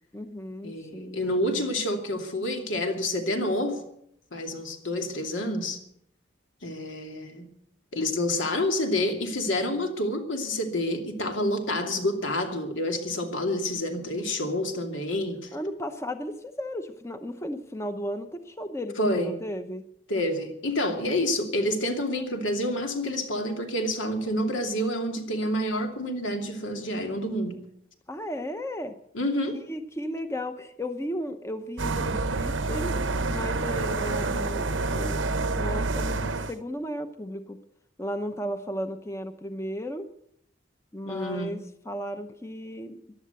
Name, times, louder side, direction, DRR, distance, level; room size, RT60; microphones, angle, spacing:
voice 1, 0.1-1.2 15.5-19.8 28.1-28.9 29.5-32.9 33.3-35.2 35.6-37.6 38.0-40.1 40.9-41.6 41.9-43.0, equal, 15° left, 8 dB, 0.8 m, -35 dB
voice 2, 0.6-3.8 4.3-5.8 6.6-7.5 7.9-15.5 19.0-19.3 20.1-27.6 29.1-29.6 41.1-41.6, left 1 dB, 80° left, 4 dB, 2.7 m, -28 dB
sound 1, 31.8-36.5, right 3 dB, 80° right, 0.9 m, -28 dB
15.0 x 11.0 x 8.2 m, 0.75 s
head